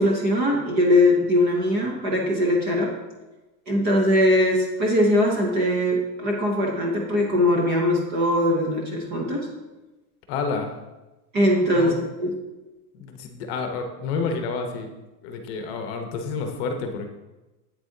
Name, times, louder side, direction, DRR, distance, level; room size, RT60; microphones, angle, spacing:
voice 1, 0.0-2.9 3.7-9.5 11.3-11.9 12.2-12.3, left 1 dB, 20° right, -1 dB, 0.5 m, -21 dB
voice 2, 10.3-10.7 11.6-11.9 12.9-14.9 15.2-17.1, left 4 dB, 40° left, 5 dB, 0.8 m, -29 dB
8.3 x 8.0 x 2.7 m, 1.1 s
supercardioid pair, 175°, 47 cm